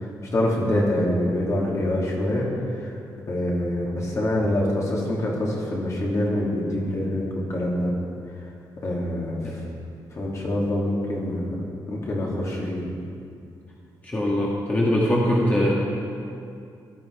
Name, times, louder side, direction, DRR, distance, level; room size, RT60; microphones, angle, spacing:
voice 1, 0.3-2.5 2.8-2.9 3.3-7.9 8.8-9.4 10.1-11.5 11.9-12.8, left 1 dB, 40° left, -3 dB, 3.2 m, -25 dB
voice 2, 14.0-15.7, left 1 dB, 20° left, -5 dB, 2.0 m, -22 dB
17.0 x 13.0 x 4.9 m, 2.5 s
wide cardioid pair, 140°, 8 cm